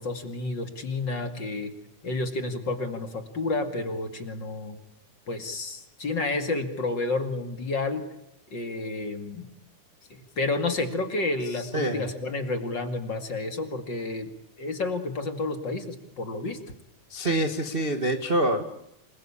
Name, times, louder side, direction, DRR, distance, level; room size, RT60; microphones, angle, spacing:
voice 1, 0.0-1.7 2.0-4.8 5.3-8.0 8.5-9.5 10.1-14.3 14.6-16.6, left 2 dB, 40° left, 7 dB, 2.6 m, -30 dB
voice 2, 11.7-12.1 17.1-18.6, right 1 dB, 30° right, 5 dB, 1.1 m, -26 dB
28.0 x 21.0 x 8.6 m, 0.80 s
omnidirectional pair, 3.6 m